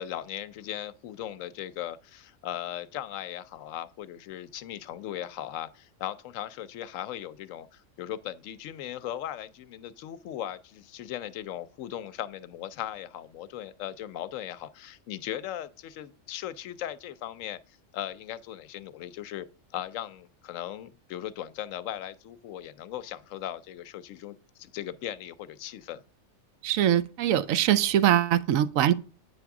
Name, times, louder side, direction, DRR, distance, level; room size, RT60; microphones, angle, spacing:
voice 1, 0.0-26.0, left 11 dB, 80° left, 0.9 m, -38 dB
voice 2, 26.6-28.9, right 11 dB, 85° right, 1.0 m, -23 dB
9.2 x 3.6 x 5.8 m
omnidirectional pair, 1.4 m